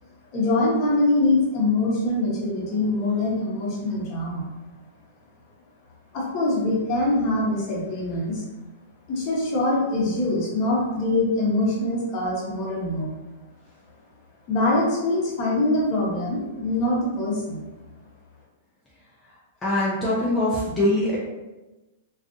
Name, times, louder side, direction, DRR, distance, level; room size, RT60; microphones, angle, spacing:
voice 1, 0.3-4.5 6.1-8.4 9.1-13.1 14.5-17.6, left 2 dB, 40° left, -4 dB, 0.9 m, -23 dB
voice 2, 19.6-21.2, left 1 dB, 10° left, -8 dB, 0.5 m, -22 dB
2.5 x 2.4 x 2.4 m, 1.1 s
hypercardioid pair, 140°, 0 cm